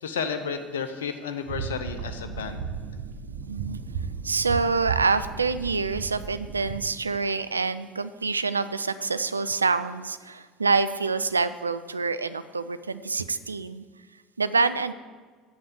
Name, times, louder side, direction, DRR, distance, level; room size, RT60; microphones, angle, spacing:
voice 1, 0.0-2.6, left 6 dB, 75° left, 8 dB, 0.7 m, -32 dB
sound 1, 1.5-6.9, right 6 dB, 65° right, 1.1 m, -35 dB
voice 2, 3.5-3.8 4.2-13.8 14.4-14.9, right 4 dB, 85° right, 12 dB, 0.4 m, -26 dB
8.7 x 7.1 x 8.0 m, 1.5 s
figure-of-eight pair, 65°, 0 cm